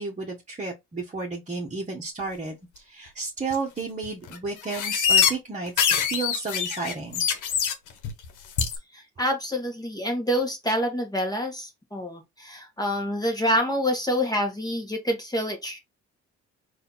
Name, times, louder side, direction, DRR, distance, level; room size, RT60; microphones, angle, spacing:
voice 1, 0.0-7.2, right 4 dB, 25° right, 1.3 m, -32 dB
sound 1, 3.5-3.6 4.0-4.4 4.7-5.3 5.7-7.7 8.0-8.3 8.6-8.8, left 7 dB, 85° left, 1.0 m, -23 dB
voice 2, 8.9-15.8, equal, 15° left, 1.5 m, -27 dB
4.2 x 2.7 x 4.0 m
cardioid pair, 90°, 30 cm